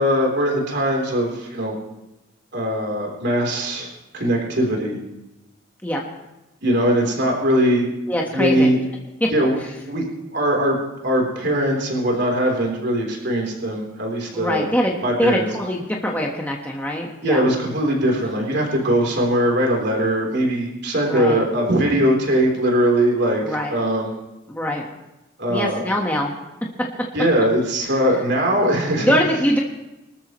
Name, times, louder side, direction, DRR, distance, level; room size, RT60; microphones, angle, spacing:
voice 1, 0.0-1.8 2.5-3.9 4.1-5.0 6.6-7.9 8.3-8.8 9.3-9.5 9.8-10.1 10.3-10.8 11.0-14.7 15.0-15.5 17.2-24.1 25.4-25.8 27.1-29.1, right 1 dB, 55° right, -1 dB, 3.7 m, -20 dB
voice 2, 8.1-8.7 9.2-9.3 14.3-17.5 21.0-21.4 23.4-23.7 24.5-24.8 25.5-26.4 29.0-29.6, equal, 10° left, -1 dB, 1.4 m, -23 dB
24.5 x 13.0 x 3.2 m, 0.96 s
head